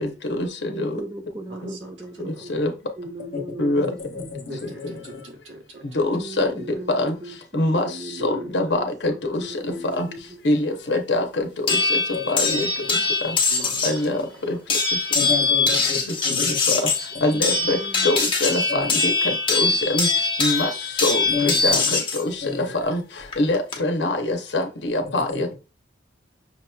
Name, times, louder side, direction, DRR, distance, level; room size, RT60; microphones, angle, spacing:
voice 1, 0.0-1.0 1.6-1.7 2.5-2.7 3.6-3.9 5.9-6.5 6.9-7.1 7.5-7.9 8.2-9.6 10.0-10.1 10.4-12.0 12.3-12.7 13.2-13.4 13.8-14.6 16.4-16.5 17.2-17.8 18.0-20.1 20.4-20.7 21.0-23.0 23.4-25.5, left 2 dB, 65° left, 0.8 m, -24 dB
voice 2, 0.7-4.4 6.1-10.4 12.9-13.1 17.3-18.1 21.7-21.8, right 1 dB, 20° right, 0.5 m, -38 dB
voice 3, 1.5-2.5 4.5-6.0 6.4-6.8 8.2-8.7 9.1-9.5 12.2-12.4 13.5-14.6 16.7-16.9, right 1 dB, 90° right, 1.2 m, -43 dB
voice 4, 3.8-5.2 12.1-12.9 15.1-16.6 18.7-18.8 21.3-21.9 22.4-22.7 25.3-25.4, left 5 dB, 50° left, 1.2 m, -31 dB
sound 1, 11.7-14.0 14.7-22.2 23.3-23.7, left 4 dB, 30° left, 0.8 m, -22 dB
5.9 x 2.9 x 2.3 m
head